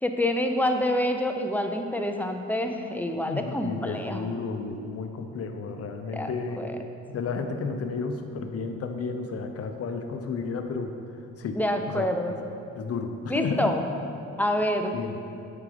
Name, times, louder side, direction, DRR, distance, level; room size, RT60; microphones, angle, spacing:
voice 1, 0.0-4.3 6.1-6.8 11.6-12.4 13.3-13.8 14.4-14.9, left 1 dB, 5° left, 4 dB, 0.6 m, -27 dB
voice 2, 3.2-6.6 7.1-10.9 11.4-11.6 11.9-12.1 12.8-13.7 14.9-15.2, left 4 dB, 50° left, 6 dB, 0.8 m, -32 dB
8.2 x 5.0 x 5.0 m, 2.6 s
cardioid pair, 90°, 30 cm